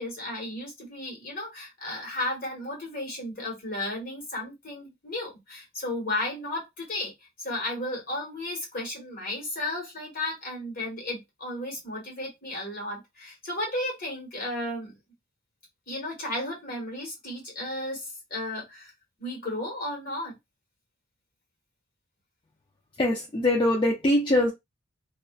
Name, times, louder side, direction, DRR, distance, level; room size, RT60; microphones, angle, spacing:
voice 1, 0.0-7.1 7.4-15.0 15.9-18.9 19.2-20.4, left 1 dB, 45° left, 1.5 m, -34 dB
voice 2, 23.0-24.5, left 1 dB, 25° left, 0.5 m, -22 dB
2.7 x 2.2 x 2.4 m
head